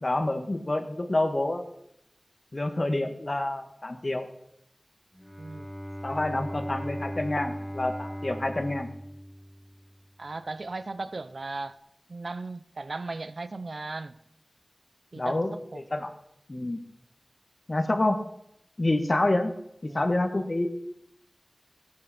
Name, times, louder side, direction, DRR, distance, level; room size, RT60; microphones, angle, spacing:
voice 1, 0.0-1.6 2.5-4.3 6.0-8.9 15.1-16.1 16.5-16.8 17.7-18.2 18.8-19.5 19.8-20.7, left 2 dB, 50° left, 6 dB, 1.6 m, -27 dB
Bowed string instrument, 5.1-10.2, equal, 5° left, 0.9 m, -38 dB
voice 2, 10.2-11.7 12.1-14.1 15.1-15.8 19.9-20.0 20.3-20.5, right 3 dB, 80° right, 14 dB, 0.6 m, -37 dB
16.5 x 8.7 x 4.3 m, 0.76 s
wide cardioid pair, 60°, 0 cm